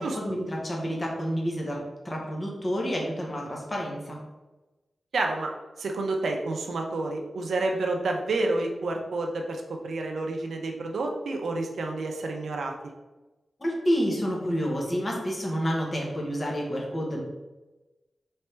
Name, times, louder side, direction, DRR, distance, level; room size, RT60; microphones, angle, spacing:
voice 1, 0.0-4.2 13.6-17.2, equal, 25° left, -2 dB, 0.9 m, -29 dB
voice 2, 5.1-5.5 5.8-12.7, right 2 dB, 80° right, 2 dB, 0.5 m, -29 dB
3.4 x 3.3 x 4.4 m, 1.1 s
wide cardioid pair, 130°, 0 cm